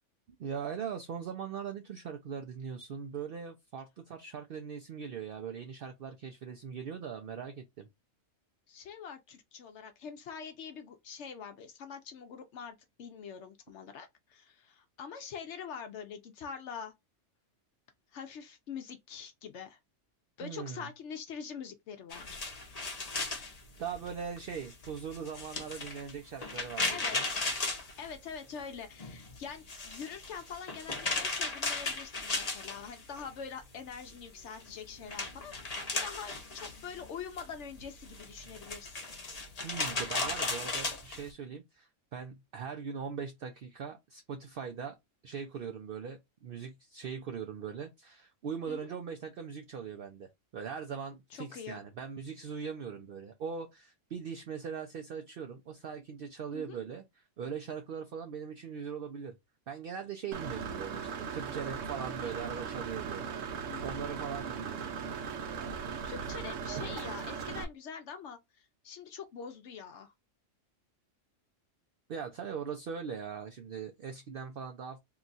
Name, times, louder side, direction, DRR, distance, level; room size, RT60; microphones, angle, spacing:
voice 1, 0.4-7.9 20.4-20.9 23.8-27.3 39.6-44.9 45.2-59.3 59.7-63.3 63.8-64.9 72.1-75.0, right 6 dB, 60° right, 0.7 m, -40 dB
voice 2, 8.7-16.9 18.1-19.8 20.4-22.4 26.9-27.5 28.0-39.1 48.7-48.8 51.3-51.8 56.5-56.8 60.5-60.8 62.2-62.3 63.7-64.0 65.5-65.8 66.0-70.1, left 6 dB, 70° left, 0.9 m, -44 dB
sound 1, 22.1-28.6 28.9-33.3 33.6-41.3, left 3 dB, 35° left, 0.8 m, -36 dB
Engine / Mechanisms, 60.3-67.6, right 6 dB, 90° right, 1.0 m, -38 dB
2.9 x 2.3 x 3.9 m
omnidirectional pair, 1.3 m